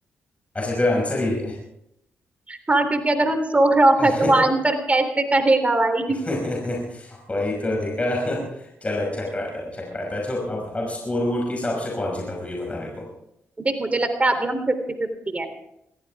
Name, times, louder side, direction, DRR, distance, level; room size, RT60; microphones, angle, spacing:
voice 1, 0.5-1.6 4.0-4.4 6.1-13.1, left 1 dB, 25° left, -1 dB, 5.7 m, -27 dB
voice 2, 2.5-6.2 13.6-15.5, right 2 dB, 30° right, 7 dB, 3.3 m, -20 dB
23.0 x 15.0 x 3.6 m, 0.80 s
supercardioid pair, 55°, 5 cm